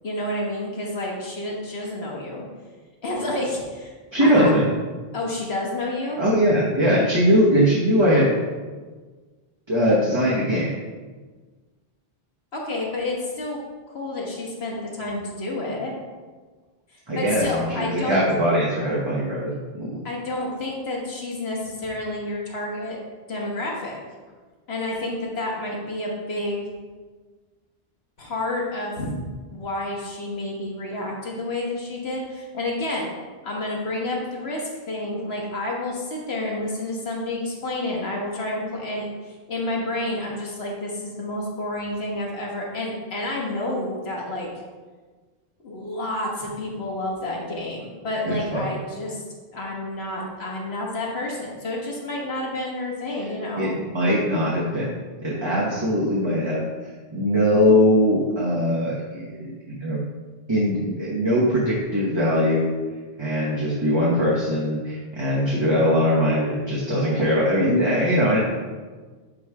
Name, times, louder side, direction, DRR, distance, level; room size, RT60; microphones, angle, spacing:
voice 1, 0.0-2.4 3.0-3.9 4.2-4.5 5.1-6.2 12.5-13.6 13.9-15.9 17.2-18.2 20.0-23.0 23.3-24.0 24.7-26.7 28.2-29.1 29.5-33.1 33.4-44.5 45.6-49.2 49.5-53.7, left 1 dB, 85° left, -2 dB, 1.6 m, -29 dB
voice 2, 4.1-4.7 6.2-8.3 9.7-10.7 17.1-20.0 48.2-48.6 53.6-54.9 55.2-56.7 57.1-60.0 60.5-62.7 63.2-68.4, equal, 30° right, -6 dB, 1.1 m, -21 dB
8.6 x 3.1 x 4.8 m, 1.4 s
omnidirectional pair, 1.0 m